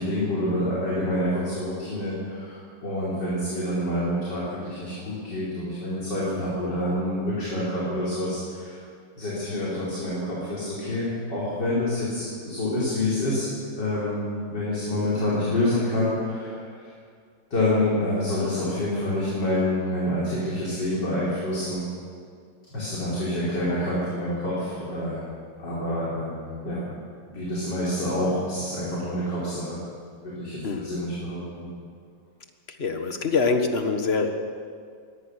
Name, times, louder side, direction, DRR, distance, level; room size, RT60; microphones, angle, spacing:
voice 1, 0.0-8.8 9.2-13.5 13.8-14.2 14.5-16.8 17.5-21.8 22.7-25.2 25.6-26.8 27.3-29.8 30.2-31.7, left 1 dB, 65° left, -8 dB, 5.2 m, -27 dB
voice 2, 32.8-34.3, left 4 dB, 35° left, 5 dB, 1.6 m, -24 dB
22.5 x 17.5 x 6.5 m, 2.2 s
omnidirectional pair, 2.0 m